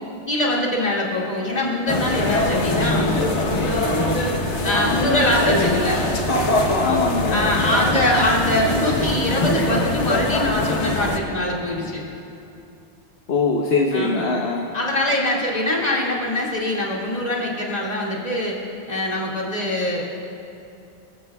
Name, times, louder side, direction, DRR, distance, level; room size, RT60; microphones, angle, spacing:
voice 1, 0.3-3.2 4.6-6.1 7.3-12.0 13.9-14.3 14.7-18.5 18.9-20.0, left 1 dB, 35° left, -4 dB, 2.3 m, -23 dB
sound 1, 1.9-11.2, left 1 dB, 85° left, 1.5 m, -22 dB
voice 2, 6.8-7.4 13.3-14.6, left 4 dB, 65° left, 0 dB, 1.1 m, -22 dB
26.0 x 14.5 x 2.3 m, 2.7 s
omnidirectional pair, 1.2 m